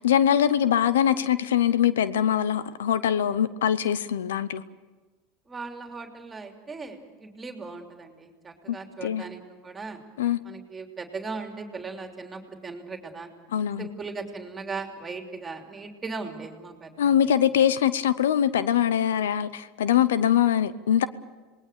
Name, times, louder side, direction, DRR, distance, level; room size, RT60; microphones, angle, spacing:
voice 1, 0.0-4.6 8.7-8.8 9.0-9.2 10.2-10.4 13.5-13.9 17.0-21.1, left 9 dB, 80° left, 16 dB, 0.8 m, -23 dB
voice 2, 5.5-10.0 10.4-13.3 13.8-17.1, right 4 dB, 20° right, 3 dB, 3.1 m, -38 dB
27.0 x 20.0 x 6.8 m, 1.3 s
hypercardioid pair, 90°, 0 cm